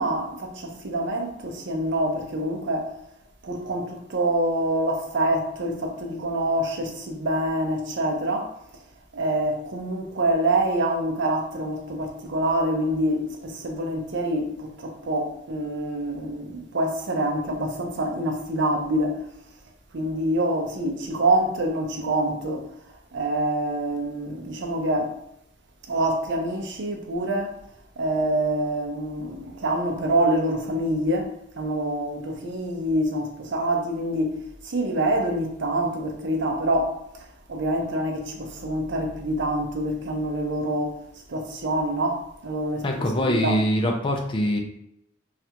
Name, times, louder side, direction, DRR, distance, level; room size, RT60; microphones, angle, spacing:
voice 1, 0.0-2.9 3.4-8.5 9.1-19.2 19.9-22.6 23.1-25.1 25.9-27.6 28.0-34.4 34.6-37.0 37.5-41.0 41.3-43.6, right 1 dB, 65° right, 0.6 m, -26 dB
voice 2, 42.8-44.6, equal, 25° left, 0.4 m, -23 dB
3.2 x 2.4 x 2.8 m
head